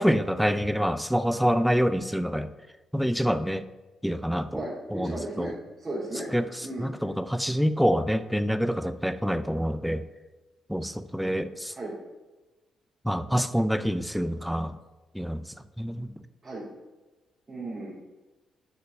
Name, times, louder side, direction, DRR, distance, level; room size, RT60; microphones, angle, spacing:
voice 1, 0.0-2.5 2.9-3.6 4.0-4.6 4.9-5.5 6.3-6.4 6.8-10.0 10.7-11.7 13.0-14.8 15.1-15.4 15.8-16.1, equal, ahead, 12 dB, 0.4 m, -26 dB
voice 2, 4.5-6.3 6.6-6.9 11.7-11.9 16.4-16.6 17.5-18.0, right 1 dB, 30° right, -10 dB, 2.6 m, -35 dB
6.7 x 5.9 x 5.2 m, 1.2 s
cardioid pair, 90°, 0 cm